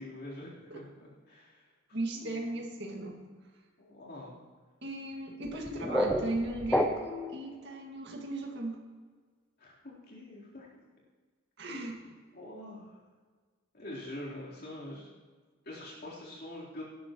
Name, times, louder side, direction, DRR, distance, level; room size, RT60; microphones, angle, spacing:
voice 1, 0.0-2.5 3.8-4.4 5.9-6.0 9.6-10.8 12.0-13.0 13.7-15.1 15.6-16.8, left 1 dB, 50° left, -6 dB, 3.9 m, -45 dB
voice 2, 1.9-3.2 4.8-8.8 11.6-12.0, right 1 dB, 55° right, 0 dB, 2.1 m, -37 dB
sound 1, 5.4-7.4, equal, 5° left, 0.7 m, -30 dB
17.5 x 11.5 x 3.1 m, 1.5 s
head